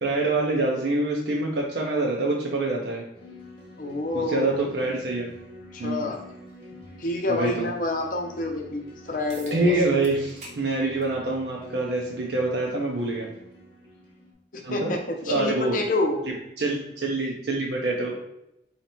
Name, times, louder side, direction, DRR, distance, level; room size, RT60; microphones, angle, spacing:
voice 1, 0.0-3.0 4.1-5.3 5.8-6.1 7.3-7.7 9.5-13.3 14.6-14.9 15.3-15.8 16.6-18.1, right 2 dB, 65° right, -2 dB, 0.5 m, -25 dB
sound 1, 3.1-14.3, left 1 dB, 25° left, 1.0 m, -47 dB
voice 2, 3.8-4.6 5.7-6.2 7.0-9.7 14.5-16.2, left 2 dB, 45° left, 2 dB, 0.6 m, -28 dB
sound 2, 9.3-9.6 10.0-10.6 11.0-11.2 12.2-12.3 17.2-17.3, right 1 dB, 35° right, 0.9 m, -45 dB
3.2 x 2.8 x 4.3 m, 0.83 s
head